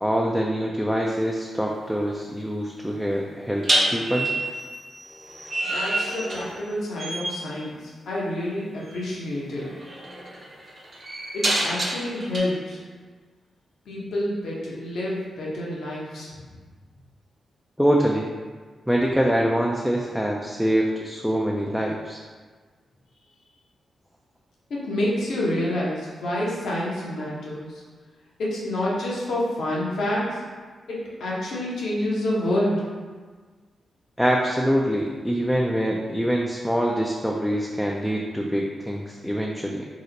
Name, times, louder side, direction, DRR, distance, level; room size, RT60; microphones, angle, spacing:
voice 1, 0.0-4.3 17.8-18.3 18.9-22.2 34.2-39.9, equal, ahead, -1 dB, 0.4 m, -24 dB
sound 1, 1.0-1.3 3.6-6.7 7.0-7.4 8.9-9.1 9.6-12.4, right 1 dB, 50° right, 0.8 m, -27 dB
voice 2, 5.6-9.7 11.3-12.8 13.9-16.3 24.7-27.8 28.4-30.4 30.9-32.8, left 1 dB, 75° left, -5 dB, 0.8 m, -28 dB
2.9 x 2.0 x 3.9 m, 1.5 s
supercardioid pair, 45°, 0 cm